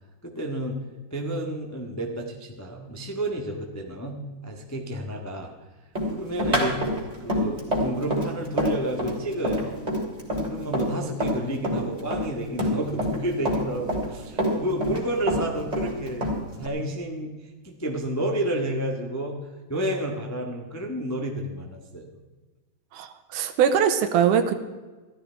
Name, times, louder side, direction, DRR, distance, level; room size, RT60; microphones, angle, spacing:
voice 1, 0.2-0.8 1.1-5.5 6.1-9.7 10.4-16.3 16.6-17.3 17.6-19.4 19.7-22.1, right 1 dB, 25° left, 1 dB, 0.4 m, -30 dB
Run, 5.9-11.4 11.6-13.2 13.4-15.0 15.3-16.7, equal, 10° right, 3.2 m, -26 dB
voice 2, 22.9-24.5, right 8 dB, 80° right, 9 dB, 2.5 m, -22 dB
15.0 x 13.5 x 4.6 m, 1.3 s
omnidirectional pair, 3.7 m